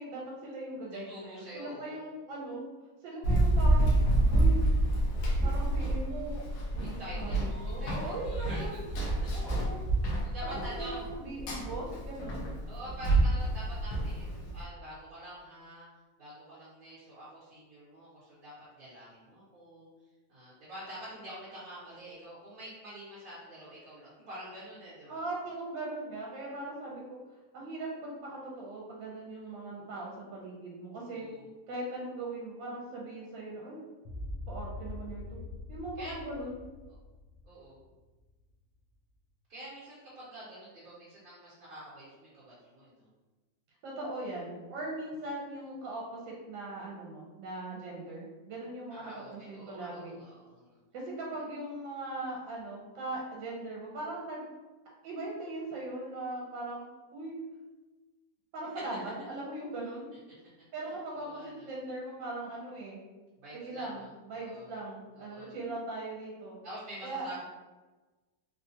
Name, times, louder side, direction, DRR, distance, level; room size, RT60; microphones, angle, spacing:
voice 1, 0.0-2.6 3.0-3.9 4.3-4.6 5.4-6.4 6.7-8.8 9.3-9.8 10.4-12.5 25.1-27.2 27.5-31.3 31.7-33.8 34.5-35.4 35.7-36.6 43.8-50.1 50.9-54.4 55.0-57.4 58.5-60.1 60.7-63.0 63.5-66.6 67.0-67.3, right 2 dB, 80° right, -3 dB, 1.4 m, -40 dB
voice 2, 0.9-2.0 6.8-7.4 7.8-8.6 9.0-9.7 10.2-11.0 12.7-15.8 16.2-19.9 20.3-25.3 31.1-31.4 36.0-36.2 37.4-37.8 39.5-43.1 48.9-50.8 61.1-61.7 63.4-64.1 64.3-64.8 65.1-65.6 66.6-67.4, right 1 dB, 50° right, -10 dB, 1.3 m, -46 dB
Run, 3.2-14.6, right 1 dB, 60° left, 1.0 m, -28 dB
sound 1, 34.0-38.4, left 2 dB, 80° left, 0.7 m, -43 dB
3.6 x 2.3 x 2.8 m, 1.2 s
omnidirectional pair, 2.0 m